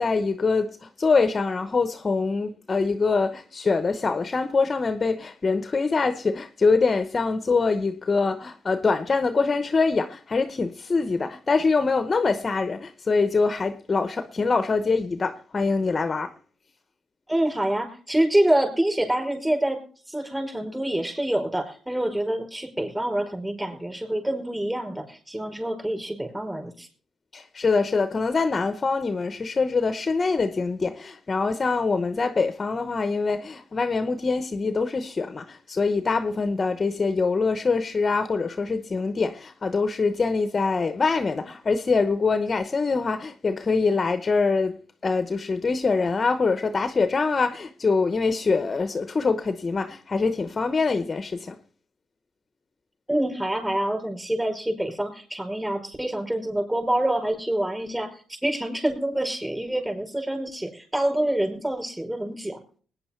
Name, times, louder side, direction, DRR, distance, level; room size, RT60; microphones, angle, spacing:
voice 1, 0.0-16.3 27.3-51.6, left 4 dB, 30° left, 0.8 m, -24 dB
voice 2, 17.3-19.8 20.1-26.9 53.1-62.6, right 1 dB, 10° right, 5.1 m, -26 dB
20.0 x 9.6 x 4.4 m
cardioid pair, 90°, 0 cm